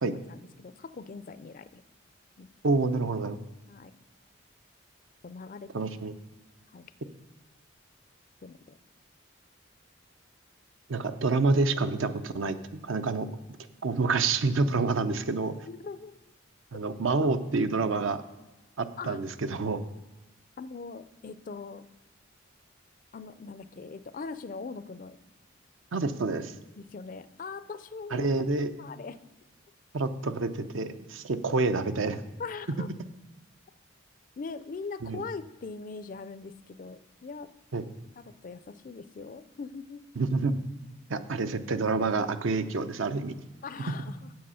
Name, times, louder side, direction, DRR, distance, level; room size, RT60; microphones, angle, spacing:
voice 1, 0.0-1.8 2.4-2.5 3.7-3.9 5.2-5.8 6.7-6.9 8.4-8.8 15.7-16.3 16.7-16.8 19.0-19.2 20.6-21.9 23.1-25.2 26.8-28.3 28.8-29.2 32.4-32.9 34.4-37.5 38.2-40.0 43.6-44.3, left 4 dB, 40° left, 13 dB, 0.4 m, -41 dB
voice 2, 2.6-3.4 5.7-6.1 10.9-13.3 13.8-15.6 16.7-18.2 18.8-19.8 25.9-26.5 28.1-28.7 29.9-32.2 35.0-35.2 37.7-37.8 40.2-40.5 41.1-43.3, right 3 dB, 75° right, 10 dB, 0.6 m, -28 dB
8.0 x 7.6 x 5.6 m, 1.1 s
head